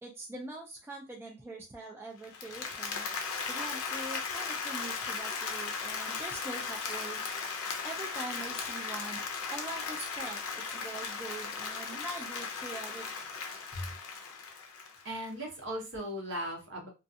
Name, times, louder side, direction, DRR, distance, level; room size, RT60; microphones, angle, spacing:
voice 1, 0.0-3.1 3.5-7.2 7.8-13.1, right 2 dB, 10° right, -1 dB, 0.3 m, -43 dB
Applause, 2.2-15.3, left 5 dB, 70° left, 0.6 m, -37 dB
voice 2, 15.0-16.9, equal, 55° right, 0 dB, 0.9 m, -37 dB
2.4 x 2.3 x 2.6 m, 0.27 s
head